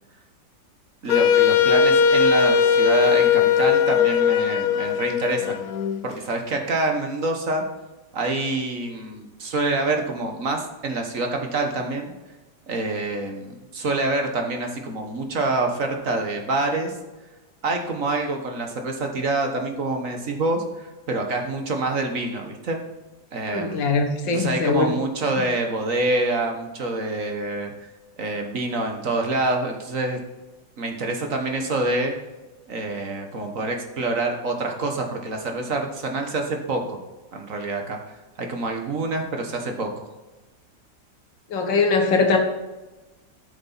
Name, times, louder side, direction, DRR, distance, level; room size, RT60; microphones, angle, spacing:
voice 1, 1.0-5.6 6.0-7.6 8.1-12.1 12.7-17.0 17.6-22.8 23.3-23.9 24.3-27.7 28.2-30.2 30.8-32.1 32.7-37.0 37.3-40.0, right 2 dB, 50° right, 3 dB, 1.5 m, -26 dB
Wind instrument woodwind instrument, 1.1-6.0, left 7 dB, 65° left, 1.1 m, -19 dB
voice 2, 23.5-24.9 41.5-42.4, left 4 dB, 85° left, 4 dB, 2.1 m, -21 dB
12.5 x 6.9 x 4.1 m, 1.1 s
omnidirectional pair, 1.9 m